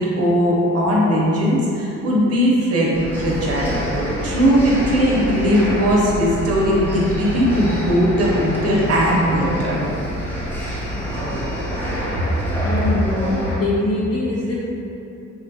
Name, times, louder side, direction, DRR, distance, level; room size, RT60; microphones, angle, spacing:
voice 1, 0.0-9.8, equal, 55° right, -4 dB, 0.7 m, -19 dB
sound 1, 2.9-13.6, equal, 5° left, 0.7 m, -27 dB
voice 2, 12.6-14.6, left 2 dB, 55° left, -5 dB, 0.5 m, -22 dB
3.4 x 2.2 x 2.7 m, 2.8 s
cardioid pair, 90°, 30 cm